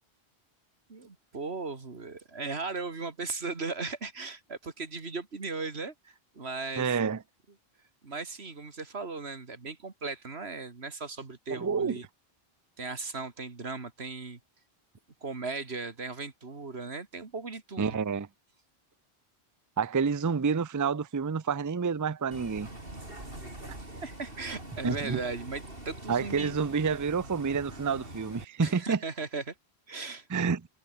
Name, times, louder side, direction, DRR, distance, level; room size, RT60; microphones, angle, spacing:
voice 1, 0.9-7.0 8.0-12.0 12.8-14.4 15.2-18.0 24.0-26.6 28.6-29.5 29.9-30.3, right 4 dB, 90° right, 2.5 m, -37 dB
voice 2, 6.8-7.2 11.5-11.9 17.8-18.3 19.8-22.7 24.8-25.2 26.1-29.0 30.3-30.6, right 5 dB, 25° right, 0.4 m, -28 dB
Bus, 22.3-28.4, right 1 dB, 65° right, 6.7 m, -44 dB
omnidirectional pair, 1.0 m